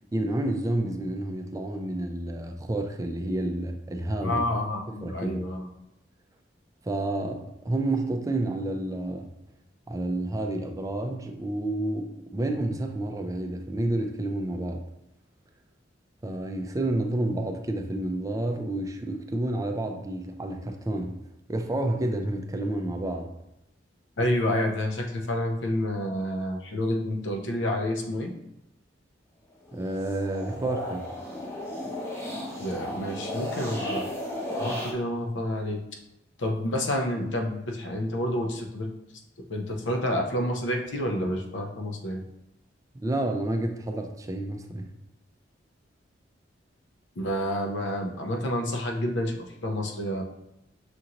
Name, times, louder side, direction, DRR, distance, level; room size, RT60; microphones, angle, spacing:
voice 1, 0.1-4.4 4.9-5.4 6.8-9.3 9.9-14.8 16.2-21.2 21.5-23.3 29.7-31.1 42.9-44.9, right 1 dB, 20° right, 4 dB, 0.4 m, -30 dB
voice 2, 4.2-5.7 24.2-28.3 32.6-34.1 34.6-35.8 36.4-38.9 39.5-42.2 47.2-50.2, left 1 dB, 80° left, 3 dB, 0.7 m, -29 dB
sound 1, 29.7-34.9, left 1 dB, 15° left, 0.8 m, -34 dB
5.9 x 2.6 x 2.9 m, 0.85 s
head